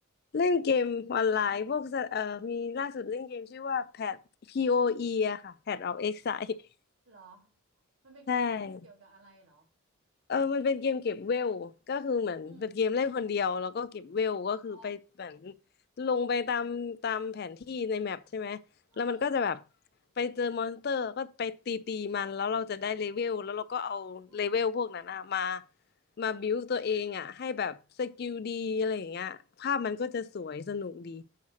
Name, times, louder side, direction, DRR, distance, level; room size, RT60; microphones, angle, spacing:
voice 1, 0.3-4.2 4.5-6.6 8.3-8.8 10.3-15.5 16.0-18.6 19.0-19.6 20.2-25.6 26.2-31.2, left 5 dB, 50° left, 0.4 m, -31 dB
voice 2, 7.0-7.6 8.0-8.5 8.8-9.7 12.4-12.8 14.7-14.9 18.9-19.3 24.3-24.6 26.2-26.4, right 3 dB, 75° right, 2.8 m, -57 dB
8.5 x 3.2 x 6.2 m
head